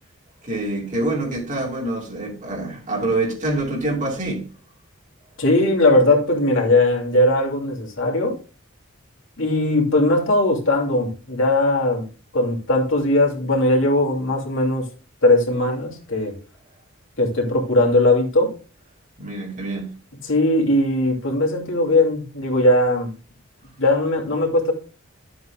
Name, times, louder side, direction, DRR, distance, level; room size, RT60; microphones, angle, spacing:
voice 1, 0.4-4.5 19.2-19.9, right 2 dB, 35° right, 2.6 m, -26 dB
voice 2, 5.4-8.4 9.4-12.0 12.3-14.9 15.2-16.3 17.2-18.5 20.2-23.1 23.8-24.7, left 1 dB, 65° left, 2.8 m, -19 dB
12.5 x 7.8 x 2.4 m
head